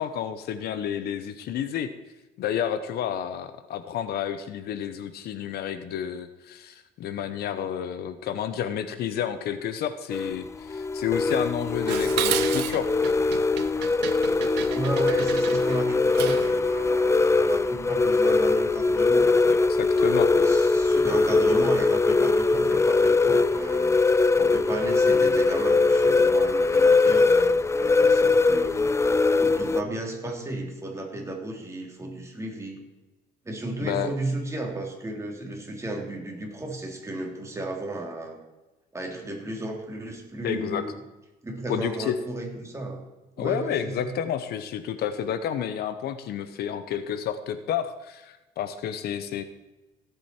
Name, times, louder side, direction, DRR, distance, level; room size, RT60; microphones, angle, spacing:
voice 1, 0.0-1.9 2.4-12.9 19.5-20.3 33.8-34.1 40.4-40.8 41.7-42.1 43.4-49.4, left 9 dB, 70° left, 11 dB, 1.0 m, -30 dB
sound 1, 10.1-29.8, left 3 dB, 15° left, 0.4 m, -21 dB
Dishes pots and pans, 11.9-16.6, right 13 dB, 85° right, 0.8 m, -32 dB
voice 2, 14.7-19.4 20.3-23.9 24.3-29.0 29.4-32.8 33.4-38.4 38.9-41.0 41.4-43.0 43.4-44.1, right 2 dB, 15° right, 0 dB, 3.2 m, -34 dB
16.5 x 8.2 x 4.5 m, 1.1 s
cardioid pair, 110°, 17 cm